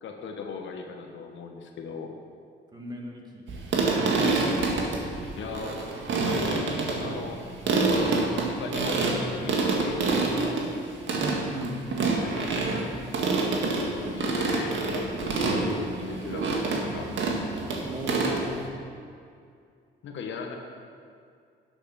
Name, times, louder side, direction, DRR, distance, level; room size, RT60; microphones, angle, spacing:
voice 1, 0.0-2.2 5.4-7.4 8.5-10.6 12.2-13.0 13.7-17.1 20.0-20.6, left 5 dB, 70° left, 3 dB, 1.3 m, -38 dB
voice 2, 2.7-3.4 11.2-11.8 17.8-18.7, right 2 dB, 20° right, -1 dB, 2.1 m, -35 dB
sound 1, 3.5-18.6, right 3 dB, 70° right, 1.8 m, -27 dB
10.5 x 8.1 x 5.7 m, 2.3 s
cardioid pair, 90°, 20 cm